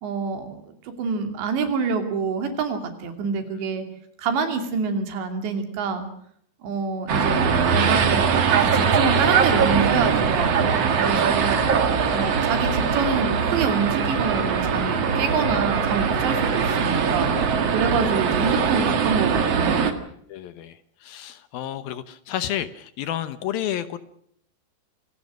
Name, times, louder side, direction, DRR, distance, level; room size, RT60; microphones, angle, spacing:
voice 1, 0.0-3.9 4.2-6.1 6.6-8.2 8.7-11.8 12.1-19.9, right 5 dB, 85° right, 7 dB, 5.0 m, -27 dB
sound 1, 7.1-19.9, right 6 dB, 45° right, 2.3 m, -21 dB
voice 2, 20.3-24.0, left 11 dB, 70° left, 13 dB, 2.5 m, -31 dB
26.5 x 18.5 x 6.4 m, 0.67 s
omnidirectional pair, 4.9 m